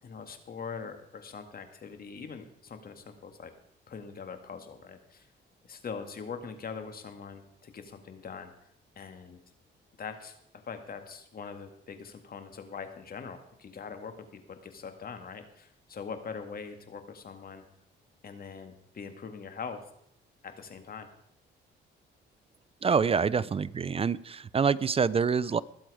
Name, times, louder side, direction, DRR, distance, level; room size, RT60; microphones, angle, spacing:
voice 1, 0.0-3.5 3.9-5.3 5.6-8.5 9.0-9.4 10.0-10.4 10.6-17.6 18.2-19.8 20.4-21.1, left 5 dB, 50° left, 8 dB, 1.9 m, -42 dB
voice 2, 22.8-25.6, right 6 dB, 30° right, 19 dB, 0.4 m, -26 dB
21.0 x 7.8 x 4.9 m, 0.74 s
cardioid pair, 90°, 20 cm